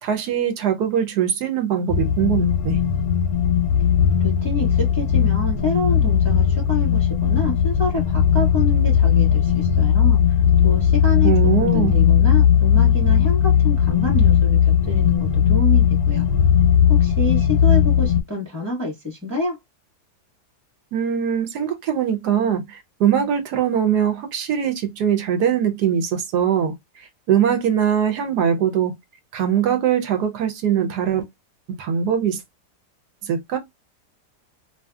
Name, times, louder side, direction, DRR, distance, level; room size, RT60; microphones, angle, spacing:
voice 1, 0.0-2.8 11.2-12.0 20.9-26.7 27.3-29.0 29.3-31.3 31.7-32.4 33.2-33.6, right 8 dB, 75° right, 1.1 m, -21 dB
sound 1, 1.9-18.2, left 8 dB, 70° left, 0.9 m, -17 dB
voice 2, 4.2-16.3 16.9-19.6, left 2 dB, 10° right, 1.0 m, -28 dB
2.7 x 2.6 x 2.3 m
omnidirectional pair, 1.8 m